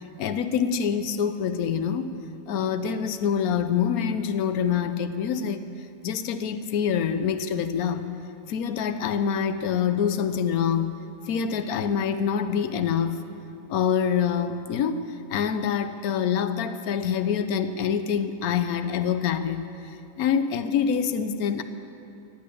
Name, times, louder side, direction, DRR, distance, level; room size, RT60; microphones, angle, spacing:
voice 1, 0.2-2.2 2.5-5.7 6.0-8.1 8.5-11.0 11.3-13.2 13.7-21.6, left 7 dB, 70° left, 10 dB, 1.2 m, -26 dB
15.5 x 9.3 x 8.5 m, 2.6 s
omnidirectional pair, 1.6 m